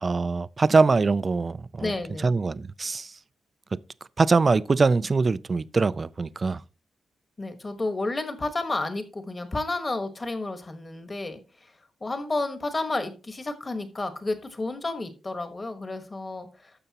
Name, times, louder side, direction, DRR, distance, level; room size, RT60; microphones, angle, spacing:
voice 1, 0.0-1.9 2.2-3.2 4.2-6.6, right 4 dB, 35° right, 0.3 m, -23 dB
voice 2, 1.8-2.4 7.4-11.4 12.0-16.5, left 2 dB, 25° left, 1.4 m, -31 dB
12.0 x 6.8 x 2.9 m
cardioid pair, 105°, 0 cm